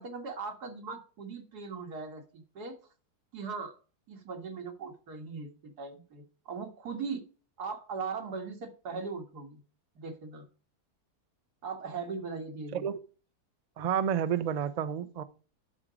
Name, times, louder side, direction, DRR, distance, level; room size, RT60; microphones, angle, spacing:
voice 1, 0.0-2.8 3.3-3.7 4.1-7.2 7.6-9.6 10.0-10.4 11.6-12.9, right 4 dB, 75° right, 2.2 m, -39 dB
voice 2, 13.8-15.2, right 8 dB, 55° right, 0.4 m, -30 dB
11.5 x 6.1 x 5.1 m
omnidirectional pair, 1.7 m